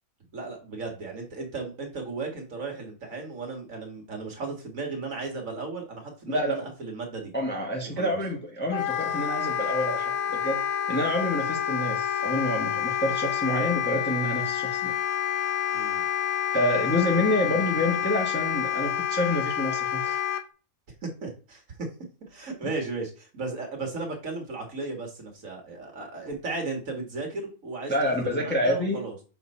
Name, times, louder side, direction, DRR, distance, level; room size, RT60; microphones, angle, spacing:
voice 1, 0.3-7.3 7.9-8.2 15.7-16.0 21.0-21.9 22.3-29.2, right 3 dB, 60° right, 2 dB, 2.1 m, -35 dB
voice 2, 7.3-10.6 10.9-14.9 16.5-20.2 22.6-22.7 27.9-29.0, left 1 dB, 5° left, -2 dB, 1.2 m, -27 dB
Wind instrument woodwind instrument, 8.7-20.4, left 9 dB, 75° left, 1.1 m, -28 dB
6.9 x 3.5 x 4.3 m, 0.36 s
omnidirectional pair, 1.6 m